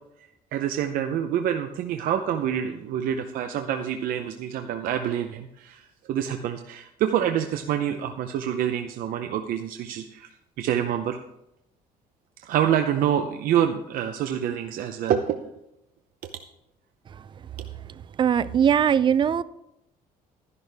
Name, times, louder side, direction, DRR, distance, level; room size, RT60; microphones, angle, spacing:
voice 1, 0.5-10.3 10.6-11.2 12.4-15.4 16.2-16.3, right 9 dB, 65° right, 0.7 m, -26 dB
voice 2, 17.9-19.4, right 8 dB, 30° right, 0.4 m, -21 dB
12.0 x 11.0 x 3.4 m
cardioid pair, 135°, 16 cm